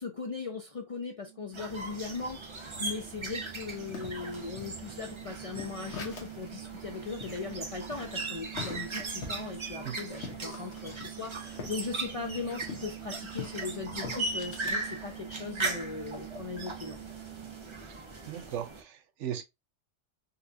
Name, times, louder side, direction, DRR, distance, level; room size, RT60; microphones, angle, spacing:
voice 1, 0.0-17.0, left 4 dB, 55° left, 0.4 m, -39 dB
sound 1, 1.0-18.5, right 20 dB, 55° right, 1.8 m, -47 dB
sound 2, 1.5-18.8, right 2 dB, 35° right, 0.5 m, -39 dB
sound 3, 3.7-6.5 6.8-6.9 7.2-11.8 12.1-14.8 15.3-15.7, left 5 dB, 70° left, 1.2 m, -44 dB
voice 2, 17.8-19.4, right 9 dB, 80° right, 1.0 m, -38 dB
4.0 x 2.3 x 2.6 m
omnidirectional pair, 1.2 m